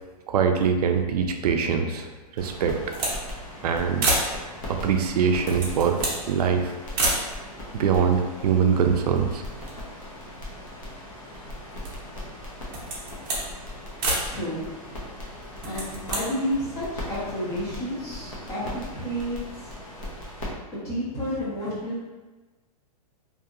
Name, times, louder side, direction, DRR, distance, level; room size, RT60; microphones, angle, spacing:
voice 1, 0.3-2.1 2.4-2.8 3.1-3.2 3.6-4.0 4.7-6.0 6.3-6.7 7.7-9.4, right 6 dB, 70° right, 5 dB, 0.4 m, -23 dB
sound 1, 2.4-20.5, left 1 dB, 55° left, 0.8 m, -39 dB
sound 2, 2.4-3.2 3.5-3.6 4.0-4.3 5.2-6.2 6.9-7.2 8.0-8.1 8.3-9.2 9.5-10.8 11.3-12.1 12.6-13.5 14.0-14.3 15.5-16.2, right 2 dB, 35° right, 0.7 m, -28 dB
voice 2, 14.3-14.6 15.6-19.7 20.7-22.0, equal, 15° left, -8 dB, 0.7 m, -31 dB
2.7 x 2.6 x 2.4 m, 1.2 s
hypercardioid pair, 170°, 20 cm